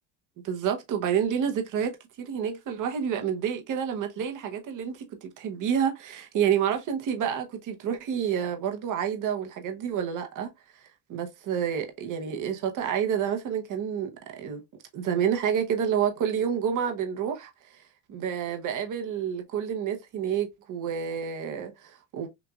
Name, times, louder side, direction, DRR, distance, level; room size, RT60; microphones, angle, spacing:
voice 1, 0.4-10.5 11.1-14.6 14.9-17.5 18.1-22.3, right 8 dB, 50° right, 0.9 m, -29 dB
6.0 x 2.5 x 2.3 m
cardioid pair, 135°, 41 cm